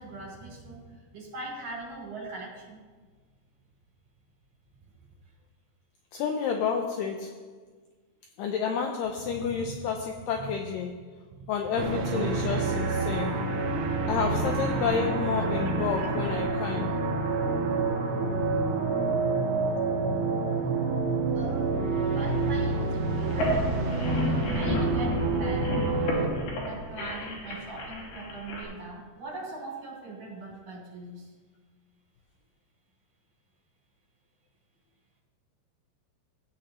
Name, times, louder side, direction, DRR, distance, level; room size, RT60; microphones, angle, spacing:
voice 1, 0.0-2.8 9.3-9.8 10.4-10.5 11.3-11.5 13.3-14.9 16.0-16.1 21.3-23.7 24.5-26.0 26.7-31.3, right 3 dB, 55° right, -5 dB, 4.4 m, -41 dB
voice 2, 6.1-7.5 8.4-11.0 11.5-13.4 14.1-17.0, left 6 dB, 90° left, 4 dB, 1.9 m, -30 dB
sound 1, 11.8-26.3, right 3 dB, 85° right, 3.1 m, -28 dB
sound 2, 23.2-28.6, left 1 dB, 75° left, 3.6 m, -32 dB
16.0 x 8.6 x 3.0 m, 1.4 s
omnidirectional pair, 4.7 m